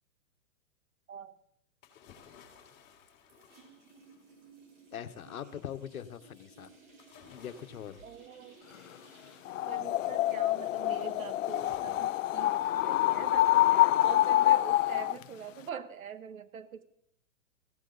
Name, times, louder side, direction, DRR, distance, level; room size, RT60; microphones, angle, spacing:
sound 1, 1.8-4.6 7.0-9.6 11.4-13.7 14.1-14.2, left 7 dB, 25° left, 3.2 m, -58 dB
sound 2, 2.4-3.0 3.3-12.7, right 4 dB, 55° right, 5.7 m, -59 dB
voice 1, 4.9-6.7 7.3-8.0, left 9 dB, 80° left, 10 dB, 1.3 m, -42 dB
voice 2, 8.0-8.6 9.3-9.4 9.7-16.8, right 7 dB, 80° right, 12 dB, 1.5 m, -44 dB
sound 3, 9.4-15.2, left 14 dB, 65° left, 0.6 m, -26 dB
17.5 x 16.0 x 4.1 m, 0.70 s
hypercardioid pair, 150°, 42 cm